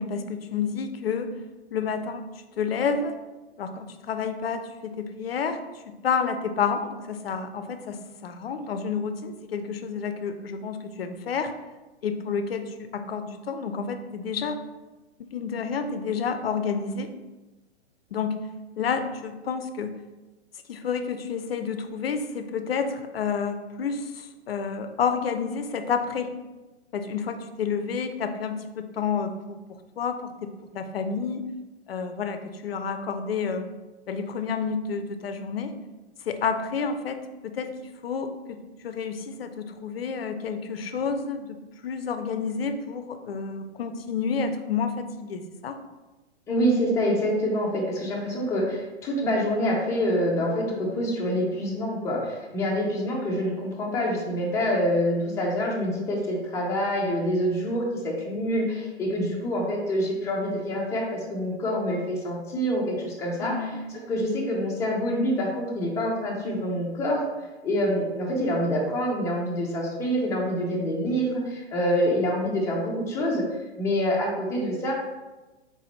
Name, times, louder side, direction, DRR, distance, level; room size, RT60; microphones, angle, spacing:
voice 1, 0.0-1.3 1.7-2.2 2.6-3.1 3.6-5.6 6.0-11.5 12.0-14.6 15.2-17.1 18.1-18.4 18.8-20.0 20.7-26.3 26.9-29.6 30.0-30.5 30.7-31.4 31.9-33.7 34.1-35.7 36.3-38.6 38.8-41.6 41.8-45.8 63.4-63.8, left 6 dB, 60° left, 9 dB, 0.5 m, -30 dB
voice 2, 46.5-63.7 64.1-67.3 67.6-73.5 73.8-74.9, equal, 10° left, -3 dB, 0.5 m, -26 dB
4.0 x 3.8 x 3.0 m, 1.1 s
figure-of-eight pair, 110°, 34 cm